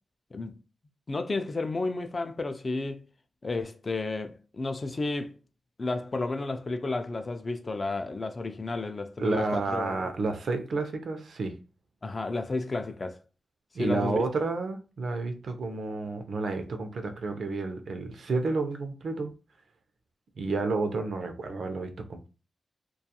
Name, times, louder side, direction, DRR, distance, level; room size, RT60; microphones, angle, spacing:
voice 1, 1.1-3.1 3.4-5.4 5.8-10.1 12.0-13.2 13.8-14.2, left 3 dB, 35° left, 0.3 m, -32 dB
voice 2, 9.2-11.6 13.7-19.3 20.4-22.3, right 3 dB, 70° right, 0.5 m, -30 dB
2.3 x 2.3 x 2.7 m
wide cardioid pair, 90°, 0 cm